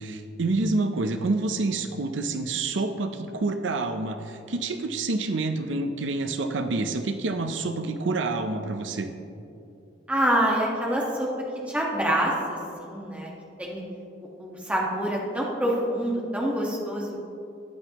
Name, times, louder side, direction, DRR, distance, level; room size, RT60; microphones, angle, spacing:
voice 1, 0.0-9.1, right 3 dB, 80° right, 7 dB, 0.6 m, -28 dB
voice 2, 10.1-11.3 11.7-13.3 13.6-13.8 14.4-17.2, right 1 dB, 5° right, -3 dB, 1.5 m, -26 dB
14.5 x 9.7 x 3.0 m, 2.6 s
head